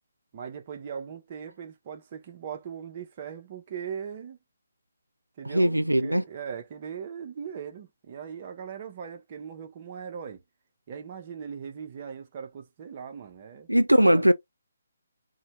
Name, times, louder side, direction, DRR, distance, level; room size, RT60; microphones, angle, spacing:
voice 1, 0.3-4.4 5.4-10.4 10.9-13.7 14.0-14.3, right 7 dB, 35° right, 0.5 m, -39 dB
voice 2, 5.4-6.2 13.7-14.3, equal, 85° right, 0.3 m, -20 dB
2.6 x 2.1 x 2.9 m
figure-of-eight pair, 140°, 0 cm